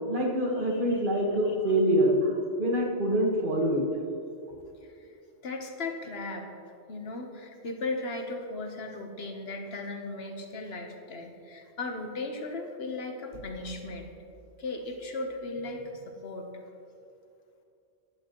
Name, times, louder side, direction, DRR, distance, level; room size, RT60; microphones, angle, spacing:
voice 1, 0.1-2.3 2.6-3.9, equal, 50° right, -1 dB, 1.6 m, -25 dB
voice 2, 5.4-6.5 6.9-14.1 14.6-16.5, left 2 dB, 65° left, 3 dB, 1.3 m, -36 dB
14.5 x 11.0 x 3.0 m, 2.6 s
omnidirectional pair, 1.1 m